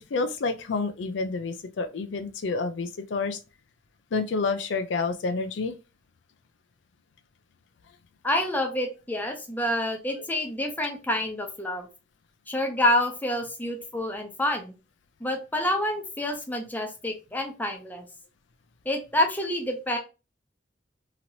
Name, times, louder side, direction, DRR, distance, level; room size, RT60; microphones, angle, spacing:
voice 1, 0.1-3.4 4.1-5.8, left 4 dB, 75° left, 0.4 m, -29 dB
voice 2, 8.2-11.9 12.5-14.7 15.2-18.1 18.9-20.0, left 1 dB, 10° left, 0.6 m, -28 dB
2.9 x 2.9 x 2.6 m
head